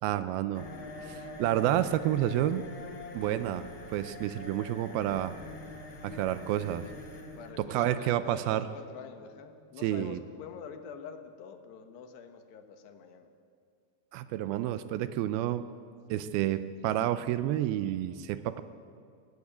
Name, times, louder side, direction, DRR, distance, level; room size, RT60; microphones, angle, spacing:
voice 1, 0.0-0.7 1.0-2.7 3.1-3.6 3.9-5.4 6.0-6.9 7.6-8.7 9.8-10.2 14.1-15.7 16.1-18.6, right 12 dB, 80° right, 13 dB, 2.4 m, -29 dB
sound 1, 0.5-10.1, left 2 dB, 40° left, 2.0 m, -46 dB
voice 2, 7.4-13.3, left 7 dB, 90° left, 7 dB, 3.4 m, -46 dB
18.5 x 17.0 x 8.5 m, 2.3 s
omnidirectional pair, 4.7 m